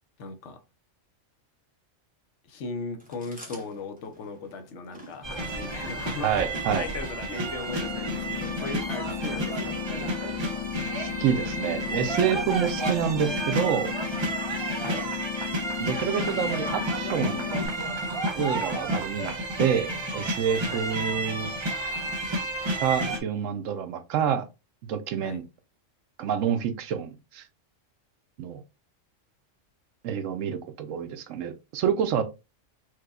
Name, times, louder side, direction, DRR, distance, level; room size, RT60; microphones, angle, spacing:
voice 1, 0.2-0.6 2.4-10.6 14.8-15.1 20.6-20.9 25.2-25.4, left 3 dB, 70° left, 1.0 m, -38 dB
Chewing mastication, 3.0-10.0, equal, 10° right, 0.8 m, -47 dB
sound 1, 5.2-23.2, right 1 dB, 35° right, 0.4 m, -31 dB
voice 2, 6.2-6.8 11.2-13.9 15.8-17.6 18.3-19.3 19.6-21.5 22.8-24.5 24.9-25.4 26.2-27.4 28.4-28.6 30.0-32.2, right 8 dB, 85° right, 1.0 m, -27 dB
sound 2, 7.7-17.7, left 11 dB, 45° left, 0.7 m, -35 dB
4.7 x 2.2 x 2.3 m
omnidirectional pair, 1.3 m